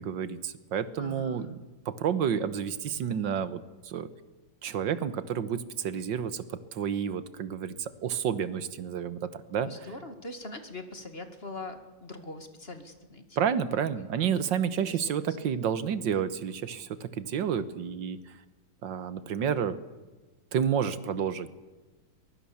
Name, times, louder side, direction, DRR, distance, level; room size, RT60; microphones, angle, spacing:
voice 1, 0.0-1.6 1.9-4.1 4.6-9.9 13.4-18.4 18.8-19.8 20.5-21.5, right 8 dB, 75° right, 14 dB, 1.7 m, -30 dB
voice 2, 1.0-1.5 9.6-13.4 13.9-14.1 14.8-15.2, left 2 dB, 30° left, 8 dB, 2.2 m, -42 dB
23.0 x 22.0 x 7.1 m, 1.2 s
omnidirectional pair, 2.0 m